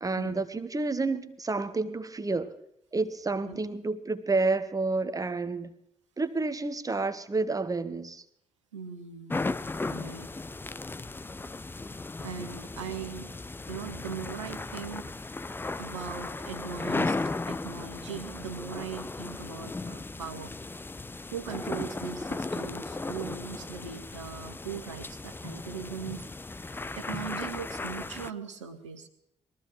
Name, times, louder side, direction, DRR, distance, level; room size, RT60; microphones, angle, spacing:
voice 1, 0.0-2.6 2.9-5.7 6.2-8.2, right 3 dB, 25° right, 13 dB, 1.1 m, -30 dB
voice 2, 8.7-9.4 9.9-10.3 12.2-13.3 13.7-15.1 15.8-17.2 17.5-20.5 21.3-26.2 26.5-26.6 26.9-29.1, right 6 dB, 80° right, 9 dB, 0.9 m, -39 dB
sound 1, 9.3-28.3, left 3 dB, 15° left, 0.5 m, -36 dB
22.0 x 14.0 x 3.1 m, 0.79 s
figure-of-eight pair, 40°, 15 cm